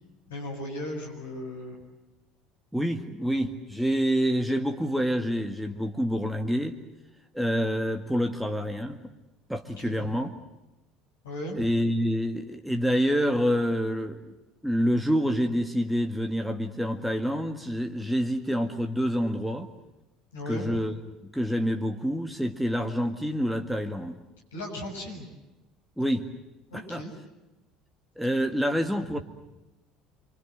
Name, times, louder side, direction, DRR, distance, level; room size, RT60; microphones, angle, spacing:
voice 1, 0.3-1.8 9.8-10.1 11.2-11.7 20.3-20.8 24.5-25.3 26.7-27.1 29.1-29.2, left 1 dB, 70° left, 1 dB, 7.4 m, -36 dB
voice 2, 2.7-6.8 7.3-9.0 9.5-10.3 11.6-14.2 14.6-19.7 20.5-20.9 21.3-24.2 26.0-26.3 26.7-27.0 28.2-29.2, equal, ahead, 4 dB, 1.9 m, -27 dB
27.0 x 26.0 x 7.8 m, 0.99 s
figure-of-eight pair, 60°, 0 cm